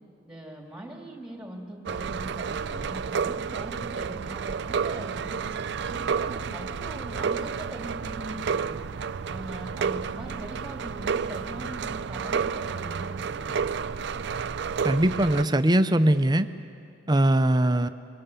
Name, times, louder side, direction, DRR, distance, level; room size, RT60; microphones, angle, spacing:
voice 1, 0.2-5.4 5.8-8.8 9.3-13.5, right 1 dB, 5° right, 1 dB, 2.8 m, -41 dB
sound 1, 1.9-15.5, right 6 dB, 60° right, 0.4 m, -31 dB
voice 2, 14.8-16.5 17.1-17.9, right 1 dB, 20° right, 11 dB, 0.6 m, -21 dB
23.5 x 22.0 x 7.0 m, 2.5 s
head